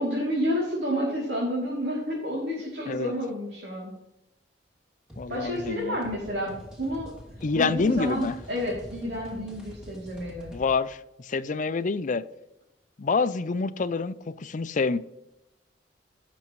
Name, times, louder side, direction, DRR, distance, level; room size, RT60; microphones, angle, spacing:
voice 1, 0.0-3.9 5.3-7.1 7.5-10.5, equal, 70° right, 2.9 m, -30 dB
sound 1, 5.1-10.7, equal, 5° right, 2.6 m, -46 dB
voice 2, 5.2-6.0 7.4-8.3 10.5-12.2 13.0-15.0, left 4 dB, 45° left, 0.5 m, -27 dB
17.0 x 6.2 x 3.1 m
head